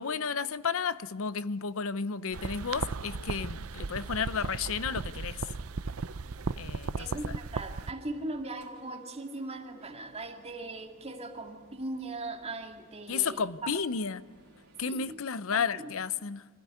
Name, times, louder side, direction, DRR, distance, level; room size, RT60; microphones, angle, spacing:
voice 1, 0.0-5.4 6.6-7.3 13.1-14.2 14.8-16.5, left 6 dB, 65° left, 0.7 m, -32 dB
sound 1, 2.3-7.9, right 4 dB, 75° right, 0.6 m, -36 dB
sound 2, 3.8-15.2, right 2 dB, 50° right, 4.0 m, -59 dB
voice 2, 7.0-13.7 14.9-15.2 15.5-15.9, right 2 dB, 30° right, 2.1 m, -39 dB
25.0 x 16.0 x 9.6 m
head